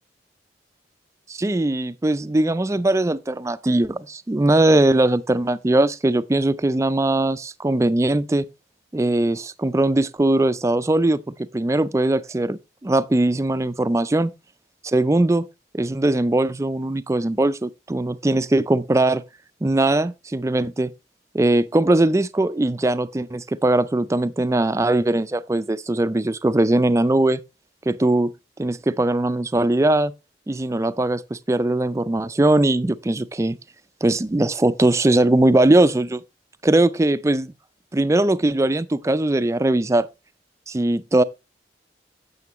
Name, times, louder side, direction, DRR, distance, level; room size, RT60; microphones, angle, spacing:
voice 1, 1.3-8.4 8.9-11.2 11.5-14.3 14.8-15.5 15.7-19.2 19.6-20.9 21.3-27.4 27.9-28.3 28.6-30.1 30.5-33.6 34.0-36.2 36.6-37.5 37.9-40.1 40.7-41.2, right 2 dB, 15° right, 0.3 m, -20 dB
9.5 x 7.7 x 3.0 m
head